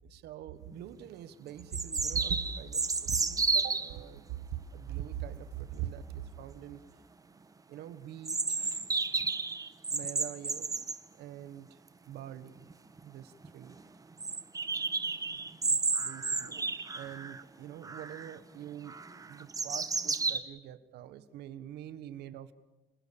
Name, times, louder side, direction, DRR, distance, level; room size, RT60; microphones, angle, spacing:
voice 1, 0.0-6.8 7.7-8.7 9.9-11.8 12.1-12.5 13.0-13.8 15.3-15.4 15.7-16.6 16.9-19.0 19.2-22.5, right 11 dB, 75° right, 14 dB, 1.4 m, -43 dB
sound 1, 0.7-0.8 1.7-3.9 8.3-11.0 12.6-12.7 13.0-13.1 13.4-13.5 14.2-17.4 17.8-18.3 18.9-20.4, right 4 dB, 20° right, 1.3 m, -32 dB
29.0 x 20.5 x 7.2 m, 1.1 s
cardioid pair, 110°, 17 cm